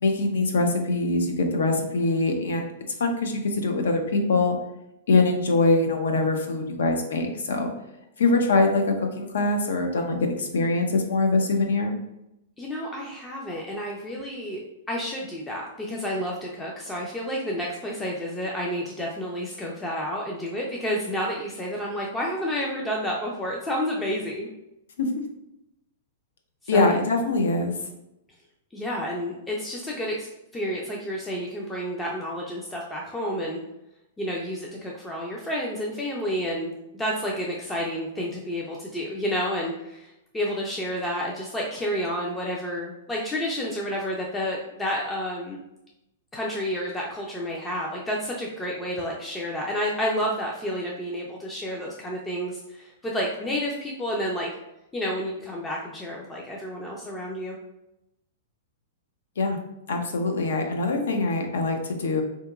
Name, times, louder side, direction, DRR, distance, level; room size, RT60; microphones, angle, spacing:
voice 1, 0.0-2.7 3.0-4.6 5.1-7.7 8.2-12.0 25.0-25.1 26.7-27.7 59.4-59.6 59.9-62.2, left 3 dB, 90° left, 4 dB, 0.6 m, -23 dB
voice 2, 12.6-24.5 26.7-27.0 28.7-30.3 30.5-33.6 34.2-45.6 46.3-54.5 54.9-57.6, equal, 10° left, -3 dB, 0.3 m, -30 dB
3.6 x 2.8 x 2.3 m, 0.88 s
hypercardioid pair, 160°, 0 cm